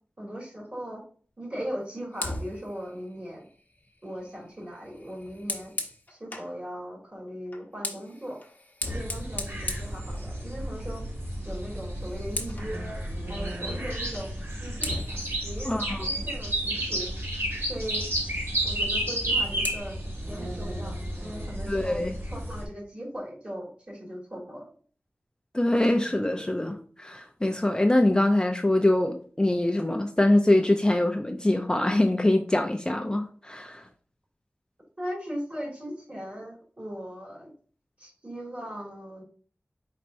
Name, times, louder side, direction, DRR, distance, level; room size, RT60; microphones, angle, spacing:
voice 1, 0.2-1.0 1.4-3.5 4.0-5.7 6.1-8.4 8.9-11.0 11.4-13.0 13.3-14.3 14.6-17.1 17.6-18.0 18.6-20.0 20.3-24.6 35.0-37.5 38.0-39.2, equal, 35° right, 2.4 m, -38 dB
Fire, 2.1-6.6 7.5-10.7 11.1-11.4 11.7-12.8 14.1-14.3 14.8-17.1 19.0-19.8, left 2 dB, 40° left, 0.9 m, -38 dB
sound 1, 8.9-22.7, right 1 dB, 70° right, 1.9 m, -32 dB
voice 2, 15.6-16.1 21.7-22.1 25.5-33.8, left 1 dB, 20° left, 0.5 m, -24 dB
4.5 x 4.3 x 2.6 m
wide cardioid pair, 65°, 4 cm